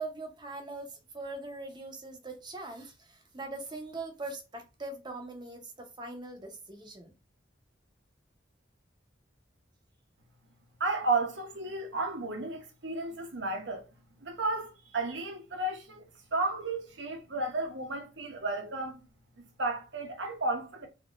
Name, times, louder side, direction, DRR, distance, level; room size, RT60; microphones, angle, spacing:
voice 1, 0.0-7.1, right 2 dB, 25° right, 0.7 m, -41 dB
voice 2, 10.8-13.9 14.2-19.0 19.4-20.9, right 2 dB, 65° right, 0.9 m, -33 dB
3.6 x 2.8 x 2.4 m
head